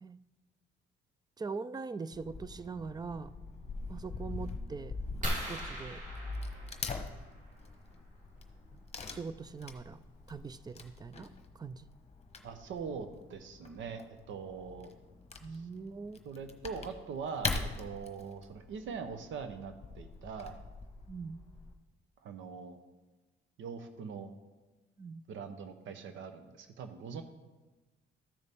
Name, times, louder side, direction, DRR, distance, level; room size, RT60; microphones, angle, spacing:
voice 1, 1.4-3.3 3.9-4.9 5.2-6.0 9.1-10.0 10.3-11.3 11.6-11.9 15.4-16.2 21.1-21.4 25.0-25.2, right 4 dB, 20° right, 15 dB, 0.4 m, -42 dB
Wood / Tearing, 2.1-21.7, left 4 dB, 35° left, 1.0 m, -43 dB
sound 1, 5.2-7.6 9.2-9.4 10.0-10.1 10.3-10.6, equal, 40° right, 2.7 m, -39 dB
voice 2, 12.4-14.9 15.5-15.7 16.2-20.6 22.2-22.8 23.6-24.3 25.3-27.2, right 6 dB, 75° right, 8 dB, 0.8 m, -42 dB
13.5 x 6.6 x 3.5 m, 1.2 s
cardioid pair, 90°, 20 cm